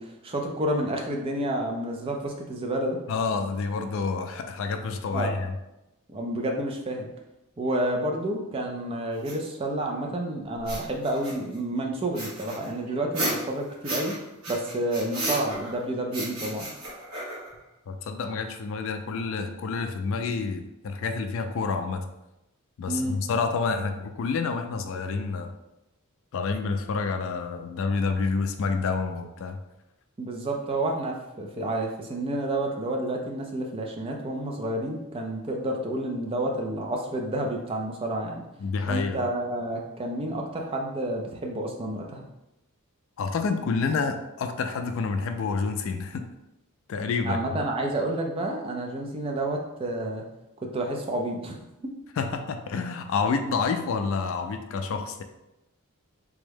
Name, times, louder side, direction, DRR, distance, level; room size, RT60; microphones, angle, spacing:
voice 1, 0.0-3.0 5.1-5.3 6.1-7.1 7.6-14.1 14.5-16.7 22.9-23.2 30.2-38.4 38.9-42.2 47.2-50.2 50.6-51.6 51.8-51.9, right 1 dB, 25° right, 1 dB, 0.4 m, -30 dB
voice 2, 3.1-5.5 17.9-22.1 22.8-25.5 26.3-29.6 38.6-39.2 43.2-46.2 46.9-47.4 52.2-55.2, left 4 dB, 60° left, 7 dB, 0.3 m, -28 dB
sound 1, 9.2-9.3 10.6-11.6 12.2-14.2 14.4-15.8 16.1-17.6, right 1 dB, 75° right, 1.3 m, -33 dB
3.4 x 2.1 x 3.3 m, 0.92 s
head